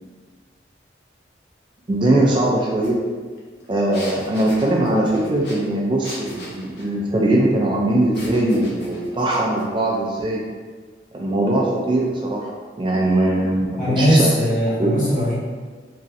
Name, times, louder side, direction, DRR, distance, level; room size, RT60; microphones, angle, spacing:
voice 1, 1.9-3.0 3.7-10.4 11.1-12.5 12.8-14.3 14.8-14.9, right 1 dB, 25° right, -3 dB, 0.3 m, -20 dB
sound 1, 2.8-2.9 3.2-6.9 8.1-9.7, left 1 dB, 65° left, 0.7 m, -38 dB
voice 2, 13.8-15.3, equal, 45° left, -8 dB, 1.0 m, -19 dB
3.0 x 2.6 x 2.6 m, 1.5 s
head